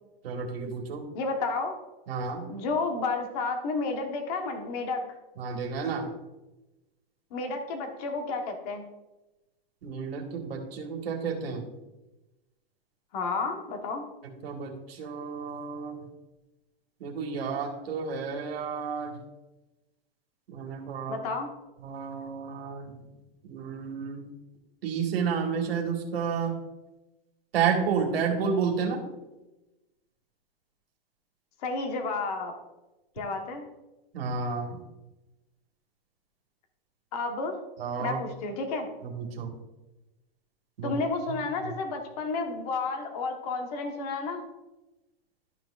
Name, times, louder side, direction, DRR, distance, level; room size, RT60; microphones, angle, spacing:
voice 1, 0.2-1.0 2.1-2.5 5.4-6.1 9.8-11.6 14.2-16.0 17.0-19.2 20.5-21.2 21.8-22.9 23.4-24.3 24.8-26.6 27.5-29.0 34.1-34.8 37.8-38.2 39.0-39.5 40.8-41.0, right 6 dB, 85° right, 3 dB, 1.8 m, -31 dB
voice 2, 1.1-1.8 2.5-5.1 7.3-8.8 13.1-14.0 21.1-21.5 31.6-32.5 33.2-33.7 37.1-37.6 38.0-38.9 40.8-44.4, left 3 dB, 40° left, 4 dB, 1.3 m, -31 dB
12.0 x 6.2 x 2.5 m, 1.0 s
supercardioid pair, 170°, 29 cm